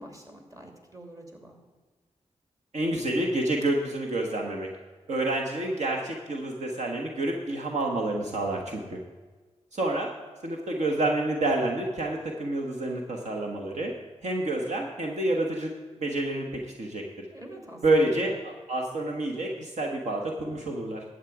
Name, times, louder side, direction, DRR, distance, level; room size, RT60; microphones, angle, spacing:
voice 1, 0.0-1.6 17.3-18.3, right 1 dB, 30° right, 3 dB, 2.7 m, -46 dB
voice 2, 2.7-4.7 5.1-9.0 9.7-10.1 10.4-13.9 14.2-15.7 16.0-17.0 17.8-21.0, right 2 dB, 70° right, 0 dB, 1.4 m, -28 dB
11.5 x 8.4 x 4.9 m, 1.3 s
cardioid pair, 50°, 12 cm